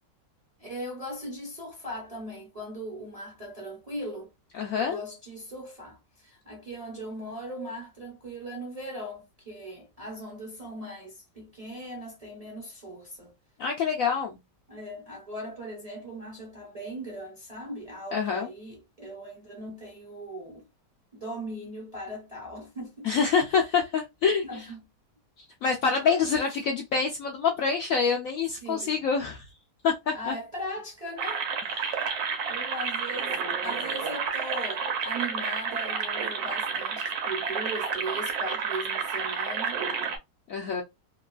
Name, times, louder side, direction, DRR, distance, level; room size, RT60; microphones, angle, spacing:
voice 1, 0.6-4.3 4.7-13.3 14.7-20.7 21.1-23.1 23.5-23.8 24.4-24.9 26.0-26.3 28.6-29.0 30.1-39.8, right 1 dB, 35° right, 0.6 m, -39 dB
voice 2, 4.6-5.0 13.6-14.4 18.1-18.5 23.0-24.6 25.6-29.4 29.8-30.3 31.8-31.9 40.5-40.8, left 6 dB, 75° left, 0.8 m, -26 dB
sound 1, 31.2-40.2, right 6 dB, 65° right, 1.1 m, -30 dB
2.9 x 2.3 x 2.3 m
omnidirectional pair, 1.9 m